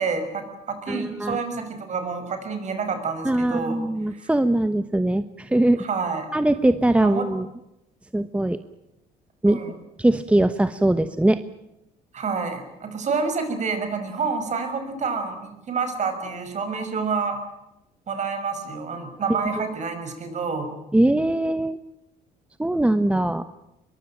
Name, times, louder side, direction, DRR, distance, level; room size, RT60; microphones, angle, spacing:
voice 1, 0.0-3.8 4.1-4.3 5.8-6.3 7.0-7.2 9.5-9.7 12.1-17.4 18.1-20.7, right 5 dB, 45° right, 8 dB, 6.0 m, -28 dB
voice 2, 0.9-1.4 3.2-5.8 6.3-7.5 8.1-8.6 9.4-9.6 10.0-11.4 19.5-19.6 20.9-21.8 22.6-23.5, right 1 dB, 5° right, 11 dB, 1.0 m, -21 dB
23.0 x 22.5 x 9.0 m, 0.88 s
cardioid pair, 110°, 17 cm